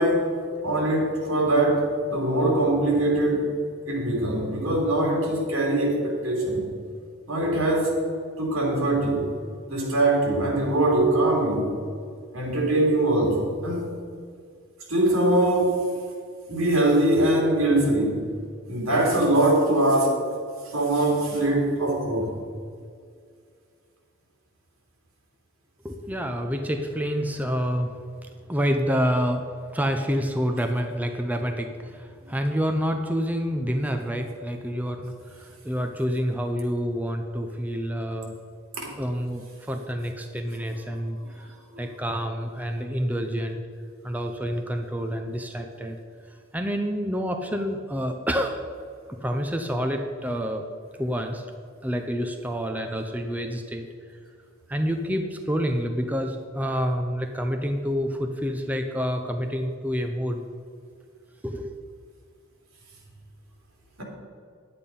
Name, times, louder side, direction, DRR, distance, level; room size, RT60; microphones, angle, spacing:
voice 1, 0.0-3.5 3.9-6.7 7.3-8.0 8.4-9.3 9.7-11.8 12.3-13.9 14.9-15.9 16.5-18.3 18.7-20.3 20.7-22.3 38.7-38.9 64.0-64.1, right 1 dB, 85° right, -1 dB, 2.9 m, -22 dB
voice 2, 25.8-28.0 28.5-38.3 39.0-43.6 44.0-46.0 46.5-48.6 49.2-50.6 51.0-51.5 51.8-53.9 54.7-60.4 61.4-61.7, equal, 5° right, 4 dB, 0.6 m, -28 dB
10.5 x 8.7 x 5.4 m, 2.2 s
head